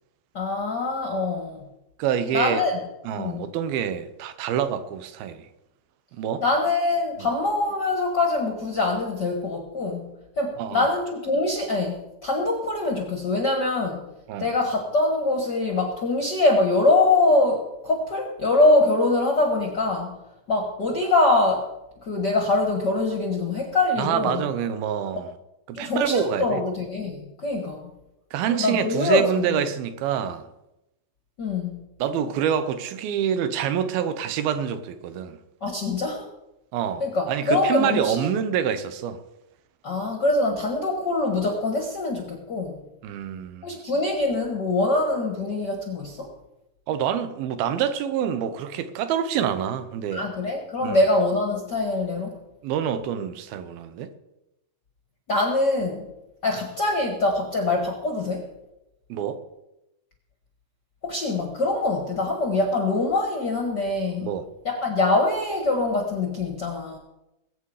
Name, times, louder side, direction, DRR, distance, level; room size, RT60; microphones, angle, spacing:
voice 1, 0.3-1.6 2.3-2.8 3.1-3.5 6.4-14.1 14.4-20.1 20.5-21.7 22.0-24.4 25.7-27.9 28.5-29.6 31.4-31.8 35.6-36.3 37.0-38.3 39.8-42.8 43.6-46.3 50.1-52.4 55.3-56.1 56.4-58.5 61.0-64.3 64.6-67.0, left 2 dB, 50° left, 1.3 m, -24 dB
voice 2, 2.0-2.6 3.0-5.5 6.2-6.4 7.2-7.3 10.6-10.9 14.3-14.5 24.0-25.3 25.7-26.6 28.3-30.5 32.0-35.4 36.7-39.2 43.0-43.7 46.9-50.3 50.8-51.0 52.6-54.1 59.1-59.4 64.2-64.5, right 9 dB, 90° right, 2.8 m, -26 dB
21.0 x 8.4 x 4.9 m
omnidirectional pair, 4.2 m